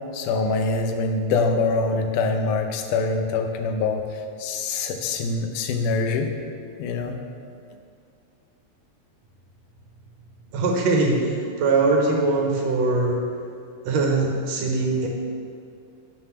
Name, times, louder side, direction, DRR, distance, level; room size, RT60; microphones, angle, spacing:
voice 1, 0.1-4.0 4.4-6.3 6.8-7.2, left 3 dB, 85° left, 4 dB, 2.3 m, -24 dB
voice 2, 10.5-13.2 13.9-15.1, right 3 dB, 70° right, 0 dB, 1.9 m, -22 dB
7.4 x 6.6 x 5.8 m, 2.5 s
omnidirectional pair, 3.5 m